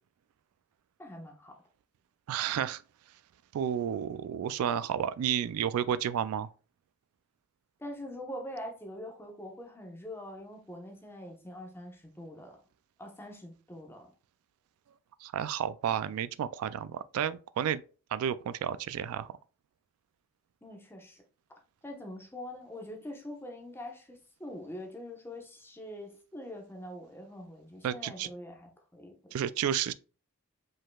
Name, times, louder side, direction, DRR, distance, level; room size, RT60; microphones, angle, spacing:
voice 1, 1.0-1.6 7.8-12.6 13.0-14.1 20.6-21.2 21.8-29.3, left 1 dB, 10° left, 0.9 m, -44 dB
voice 2, 2.3-2.8 3.5-6.5 15.2-17.8 18.1-19.3 27.8-28.3 29.3-29.9, right 9 dB, 90° right, 0.3 m, -31 dB
5.2 x 3.8 x 2.2 m
head